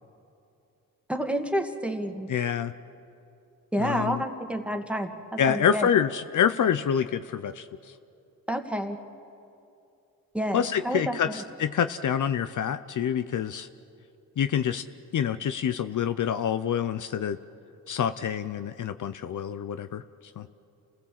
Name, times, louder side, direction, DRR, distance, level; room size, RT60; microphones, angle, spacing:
voice 1, 1.1-2.3 3.7-5.9 8.5-9.0 10.3-11.4, equal, 5° right, 5 dB, 1.9 m, -29 dB
voice 2, 2.3-2.7 3.8-4.2 5.4-7.7 10.5-13.7 14.4-14.8 15.1-17.4 17.9-20.0 20.4-20.5, left 8 dB, 60° left, 11 dB, 0.7 m, -27 dB
29.0 x 16.0 x 7.6 m, 2.6 s
cardioid pair, 70°, 35 cm